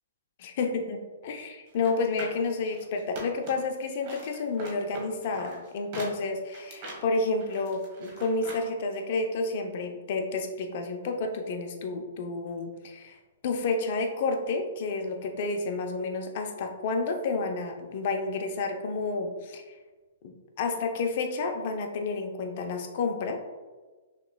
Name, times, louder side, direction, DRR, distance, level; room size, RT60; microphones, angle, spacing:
voice 1, 0.6-19.6 20.2-23.4, left 3 dB, 50° left, 4 dB, 0.6 m, -30 dB
sound 1, 1.7-3.7 4.0-8.6 9.0-9.1, right 1 dB, 45° right, 1.4 m, -42 dB
6.1 x 3.1 x 2.2 m, 1.3 s
hypercardioid pair, 145°, 0 cm